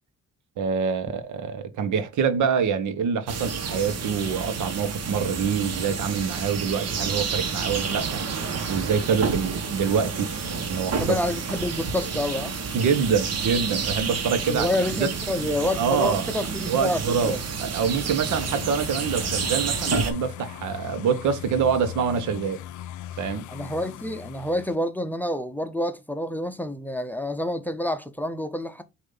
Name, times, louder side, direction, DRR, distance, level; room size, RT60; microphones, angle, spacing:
voice 1, 0.6-8.2 8.7-10.3 10.7-11.1 12.7-14.7 15.0-15.1 15.8-16.3 16.7-22.6 23.2-23.4, right 6 dB, 75° right, 1.0 m, -25 dB
sound 1, 3.3-20.1, right 5 dB, 55° right, 1.4 m, -29 dB
voice 2, 11.0-12.6 14.5-17.4 23.5-28.8, left 1 dB, 5° left, 0.7 m, -28 dB
sound 2, 18.3-24.8, left 12 dB, 75° left, 0.5 m, -39 dB
6.4 x 2.7 x 5.5 m
cardioid pair, 90°, 30 cm